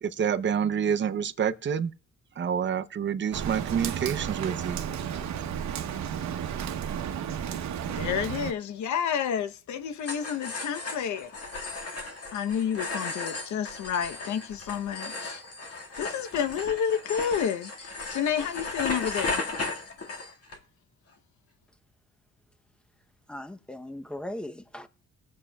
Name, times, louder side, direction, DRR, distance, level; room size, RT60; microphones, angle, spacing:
voice 1, 0.0-1.9 2.4-4.8, right 8 dB, 40° right, 0.7 m, -28 dB
Rain, 3.3-8.5, right 8 dB, 65° right, 1.0 m, -33 dB
voice 2, 7.9-11.3 12.3-15.4 16.0-19.4, left 8 dB, 70° left, 0.9 m, -30 dB
sound 1, 10.0-20.6, left 3 dB, 50° left, 1.9 m, -36 dB
voice 3, 23.3-24.9, left 1 dB, 5° left, 0.8 m, -38 dB
21.5 x 7.4 x 2.3 m
cardioid pair, 90°, 30 cm